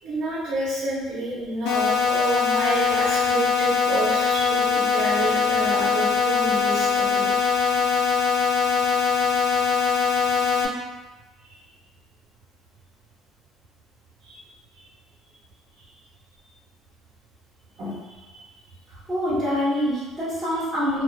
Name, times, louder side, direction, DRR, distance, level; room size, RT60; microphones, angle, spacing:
voice 1, 0.0-7.6 8.8-8.9 11.4-11.6 14.2-14.4 14.7-14.8 17.8-18.4, right 2 dB, 65° right, -8 dB, 0.7 m, -30 dB
sound 1, 1.7-10.7, left 5 dB, 80° left, 0.4 m, -22 dB
voice 2, 19.1-21.0, equal, 15° right, -11 dB, 1.1 m, -25 dB
2.3 x 2.3 x 2.3 m, 1.2 s
cardioid pair, 145°, 0 cm